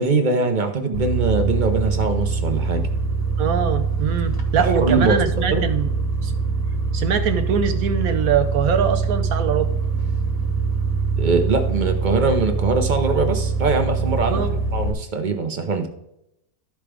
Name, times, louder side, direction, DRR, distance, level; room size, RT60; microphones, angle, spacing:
voice 1, 0.0-2.9 4.6-5.2 5.5-5.6 11.2-14.5 14.7-15.9, right 3 dB, 40° right, 5 dB, 0.8 m, -22 dB
sound 1, 0.9-14.9, right 4 dB, 15° left, 1.1 m, -23 dB
voice 2, 3.4-5.9 6.2-6.3 6.9-9.7 14.3-14.6, right 7 dB, 70° right, 7 dB, 1.0 m, -22 dB
13.0 x 4.9 x 3.4 m, 0.80 s
omnidirectional pair, 1.7 m